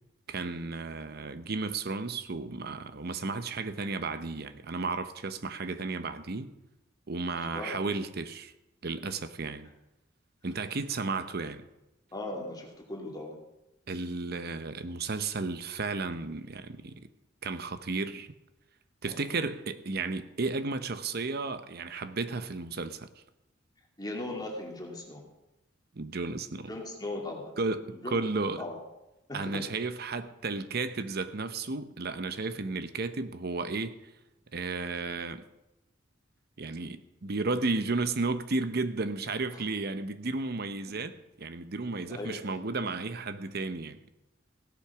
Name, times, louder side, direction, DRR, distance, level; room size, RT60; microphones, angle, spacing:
voice 1, 0.3-6.5 7.1-8.5 8.8-9.7 10.4-11.6 13.9-17.1 17.4-18.3 19.0-23.1 25.9-26.7 27.6-28.6 29.3-34.0 34.5-35.4 36.6-44.0, right 3 dB, 55° right, 0.8 m, -33 dB
voice 2, 7.4-7.8 11.3-11.4 12.1-13.4 19.1-19.3 24.0-25.2 26.7-27.5 27.9-28.2 28.6-28.8 29.3-29.7 39.5-39.6 40.9-41.0 42.1-42.4, left 2 dB, 20° left, 2.4 m, -38 dB
16.5 x 8.4 x 6.0 m
head